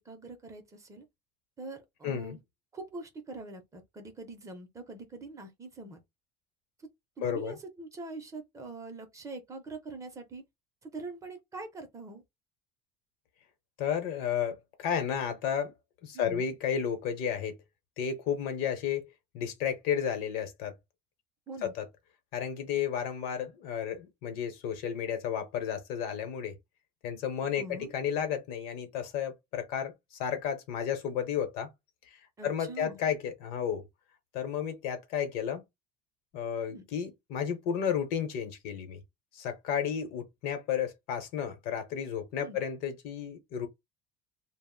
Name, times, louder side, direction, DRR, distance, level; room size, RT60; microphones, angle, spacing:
voice 1, 0.1-1.0 1.6-2.4 2.7-6.0 7.2-10.4 10.8-12.2 16.1-16.5 21.5-21.7 27.6-27.9 32.4-33.0 36.7-36.8 42.4-42.6, right 3 dB, 20° right, 0.5 m, -43 dB
voice 2, 2.0-2.4 7.2-7.6 13.8-15.7 16.0-17.5 18.0-19.1 19.3-20.7 21.6-21.8 22.3-26.5 27.0-29.9 30.2-31.7 32.1-33.8 34.3-35.6 36.3-39.0 39.3-43.7, left 8 dB, 65° left, 0.8 m, -32 dB
2.4 x 2.0 x 3.6 m
cardioid pair, 155°, 16 cm